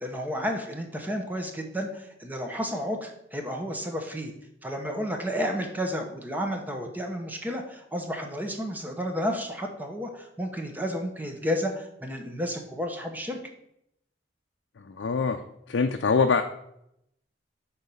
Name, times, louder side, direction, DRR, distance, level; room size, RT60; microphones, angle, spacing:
voice 1, 0.0-4.3 4.6-13.4, equal, 10° right, 3 dB, 0.9 m, -31 dB
voice 2, 14.9-15.4 15.7-16.4, left 5 dB, 85° left, 5 dB, 0.5 m, -23 dB
6.4 x 4.3 x 5.4 m, 0.77 s
head